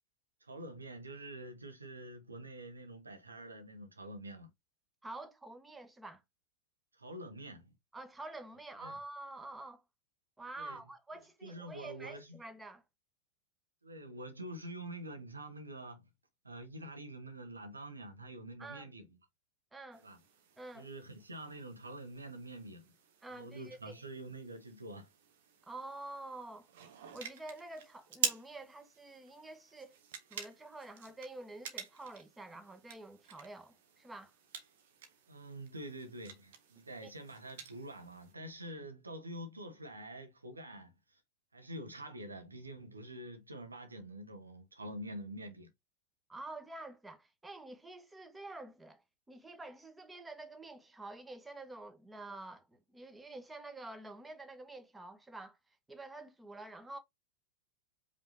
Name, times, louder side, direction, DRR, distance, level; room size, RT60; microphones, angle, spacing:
voice 1, 0.4-4.5 7.0-7.7 8.8-8.9 10.6-10.8 11.4-12.4 13.8-16.1 16.4-19.1 20.0-20.2 20.7-22.9 23.3-25.1 35.3-41.2 41.5-45.7, right 1 dB, 80° right, 1.5 m, -46 dB
voice 2, 5.0-6.2 7.9-9.8 10.4-12.8 18.6-18.8 19.7-20.0 20.6-20.9 23.2-24.0 25.7-26.7 27.1-30.0 30.3-34.3 37.0-37.1 46.3-49.0 49.3-55.6 55.9-57.0, right 2 dB, 10° right, 1.1 m, -48 dB
sound 1, 19.9-38.3, right 7 dB, 55° right, 1.3 m, -47 dB
5.4 x 3.4 x 2.7 m
figure-of-eight pair, 90°, 0 cm